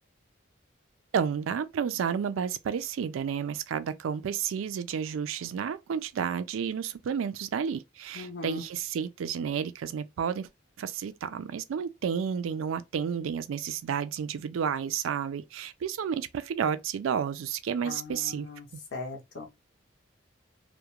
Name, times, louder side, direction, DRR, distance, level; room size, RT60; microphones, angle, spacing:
voice 1, 1.1-10.5 10.8-18.5, right 7 dB, 90° right, 0.3 m, -31 dB
voice 2, 8.1-8.7 17.8-18.7 18.9-19.5, left 3 dB, 65° left, 0.6 m, -39 dB
2.3 x 2.1 x 2.8 m
head